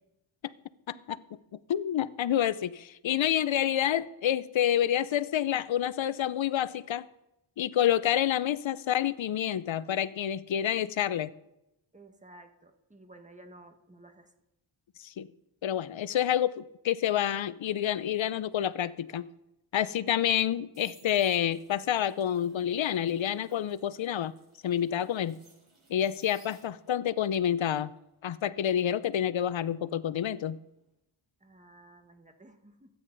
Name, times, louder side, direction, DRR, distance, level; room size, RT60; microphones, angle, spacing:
voice 1, 0.9-1.2 1.5-7.1 7.6-11.3 15.0-15.3 15.6-19.3 19.7-24.3 24.6-25.4 25.9-27.9 28.2-30.6, left 10 dB, 65° left, 0.7 m, -28 dB
voice 2, 11.9-14.3 31.4-32.9, right 1 dB, 15° right, 1.4 m, -54 dB
sound 1, 20.3-27.1 27.4-30.3 30.6-30.9, right 3 dB, 75° right, 6.0 m, -61 dB
24.5 x 9.4 x 4.0 m
wide cardioid pair, 95°, 50 cm